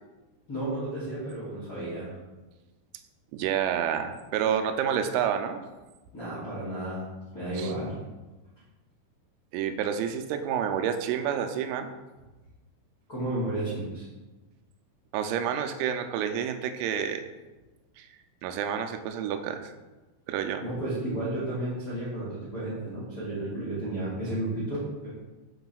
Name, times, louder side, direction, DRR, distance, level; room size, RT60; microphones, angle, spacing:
voice 1, 0.5-2.2 6.1-7.1 7.3-8.0 13.1-14.0 20.6-25.1, right 1 dB, 60° left, -11 dB, 1.2 m, -32 dB
voice 2, 3.3-5.6 7.6-7.7 9.5-11.9 15.1-17.2 18.0-18.1 18.4-19.7 20.3-20.6, right 8 dB, 85° right, 7 dB, 3.2 m, -29 dB
10.5 x 4.7 x 2.3 m, 1.2 s
omnidirectional pair, 5.9 m